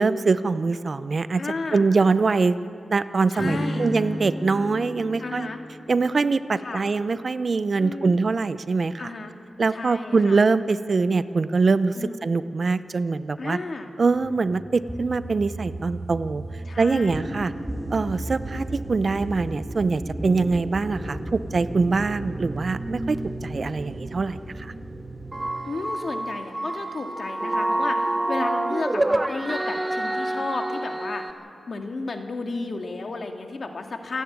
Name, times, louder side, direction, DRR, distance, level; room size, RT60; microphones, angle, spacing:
voice 1, 0.0-1.4 1.7-2.6 2.9-5.5 5.9-9.0 9.6-13.6 14.0-16.4 16.8-17.5 17.9-24.7, right 4 dB, 55° right, 14 dB, 0.6 m, -23 dB
voice 2, 1.4-1.8 3.3-3.9 5.2-5.6 6.6-6.8 7.8-8.2 9.0-9.3 9.7-10.4 12.0-12.3 13.4-13.9 16.7-17.3 25.6-31.2 31.7-34.2, left 3 dB, 60° left, 4 dB, 2.0 m, -33 dB
Strum, 3.4-7.5, equal, 30° left, 4.1 m, -33 dB
sound 1, 14.1-25.5, right 1 dB, 5° right, 2.0 m, -34 dB
sound 2, 25.3-31.3, right 1 dB, 25° right, 1.0 m, -27 dB
27.5 x 10.5 x 9.5 m, 2.6 s
cardioid pair, 75°, 0 cm